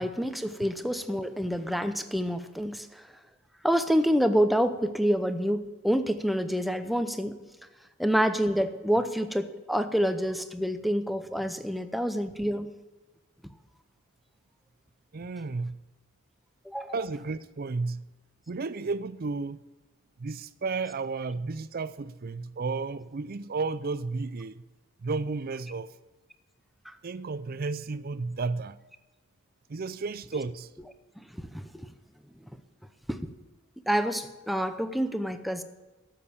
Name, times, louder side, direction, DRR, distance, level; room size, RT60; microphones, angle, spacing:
voice 1, 0.0-3.0 3.6-7.4 8.0-12.7 16.7-16.9 31.3-31.9 33.1-33.2 33.9-35.6, equal, ahead, 0.6 m, -27 dB
voice 2, 15.1-15.8 16.9-18.0 18.5-19.6 20.2-24.6 25.0-25.9 27.0-28.8 29.7-30.7, right 4 dB, 45° right, 0.5 m, -33 dB
13.0 x 7.5 x 8.5 m
head